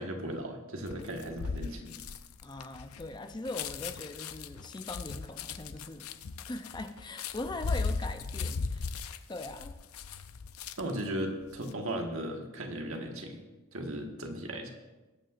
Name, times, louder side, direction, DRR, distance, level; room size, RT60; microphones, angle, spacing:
voice 1, 0.0-2.0 10.8-13.4 13.7-14.7, right 1 dB, 75° right, 2 dB, 1.6 m, -36 dB
sound 1, 0.9-11.0 11.4-11.7, left 4 dB, 85° left, 0.6 m, -37 dB
voice 2, 2.4-6.1 6.5-9.0 9.3-9.8, left 2 dB, 20° left, 7 dB, 0.5 m, -41 dB
20.0 x 8.8 x 2.5 m, 1.2 s
head